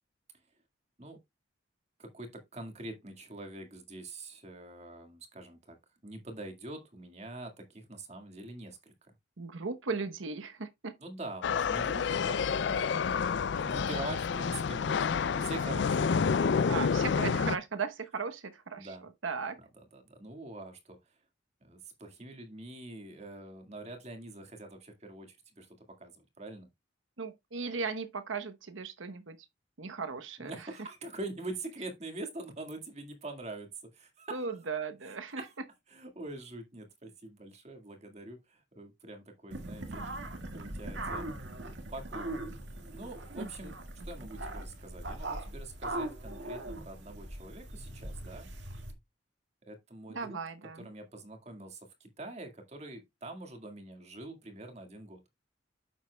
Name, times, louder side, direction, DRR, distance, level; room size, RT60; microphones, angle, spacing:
voice 1, 2.0-5.8 6.0-9.1 11.0-16.2 18.8-19.0 19.6-21.2 21.6-26.7 30.4-34.5 35.1-35.5 35.9-40.0 40.5-41.3 41.9-42.4 42.9-43.7 44.0-48.5 49.7-50.4 50.8-55.2, right 2 dB, 35° right, 1.9 m, -45 dB
voice 2, 9.4-10.9 16.7-18.9 19.2-19.6 27.2-29.4 29.8-30.7 34.3-35.4 43.4-43.7 50.1-50.9, right 4 dB, 85° right, 1.0 m, -37 dB
sound 1, 11.4-17.6, left 6 dB, 60° left, 0.4 m, -29 dB
sound 2, 39.5-48.9, right 1 dB, 70° right, 1.9 m, -40 dB
9.6 x 7.4 x 2.3 m
head